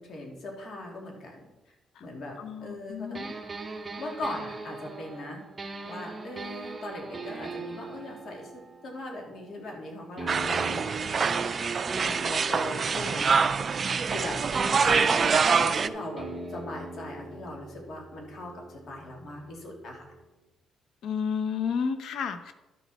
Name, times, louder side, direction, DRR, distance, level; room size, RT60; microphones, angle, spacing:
voice 1, 0.0-1.4 2.0-2.4 2.6-3.3 4.0-5.4 5.9-11.6 12.0-13.4 14.0-14.4 14.7-20.0, left 1 dB, 60° left, 0 dB, 2.9 m, -39 dB
voice 2, 2.4-3.2 21.0-22.5, left 6 dB, 75° left, 9 dB, 1.0 m, -31 dB
sound 1, 3.1-9.7 10.2-14.2 14.5-20.3, right 3 dB, 25° right, 1.3 m, -40 dB
sound 2, 10.3-15.9, right 5 dB, 45° right, 0.4 m, -25 dB
11.5 x 7.2 x 4.3 m, 1.0 s
cardioid pair, 90°, 0 cm